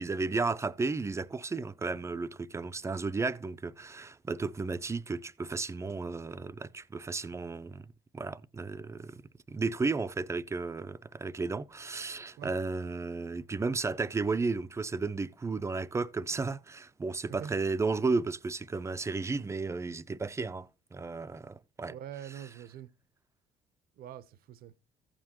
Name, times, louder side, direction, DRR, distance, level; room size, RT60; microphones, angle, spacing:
voice 1, 0.0-7.9 8.1-9.2 9.5-22.0 22.4-22.5, right 3 dB, 15° right, 0.4 m, -33 dB
voice 2, 21.9-22.9 24.0-24.7, right 9 dB, 65° right, 0.7 m, -44 dB
14.5 x 7.5 x 2.9 m
cardioid pair, 110°, 17 cm